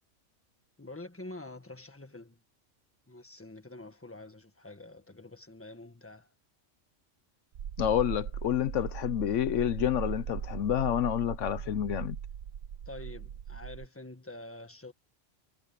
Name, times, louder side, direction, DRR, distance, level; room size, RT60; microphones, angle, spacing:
voice 1, 0.8-2.4 3.1-6.3 12.8-14.9, left 2 dB, 10° left, 1.5 m, -46 dB
sound 1, 7.5-13.9, right 9 dB, 90° right, 1.2 m, -39 dB
voice 2, 7.8-12.2, left 11 dB, 75° left, 1.0 m, -29 dB
omnidirectional pair, 1.3 m